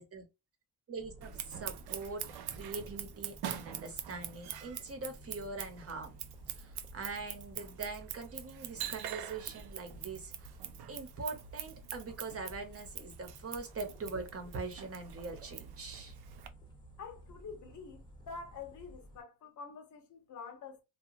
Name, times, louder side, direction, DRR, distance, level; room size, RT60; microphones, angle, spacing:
voice 1, 0.9-2.2 2.5-6.2 6.5-10.5 10.9-16.2, right 3 dB, 40° right, 0.9 m, -42 dB
sound 1, 1.0-19.2, right 1 dB, 10° left, 0.8 m, -54 dB
Scissors, 1.2-16.5, right 10 dB, 80° right, 0.5 m, -44 dB
voice 2, 17.0-20.8, left 5 dB, 50° left, 0.8 m, -47 dB
2.8 x 2.3 x 2.5 m
cardioid pair, 120°, 38 cm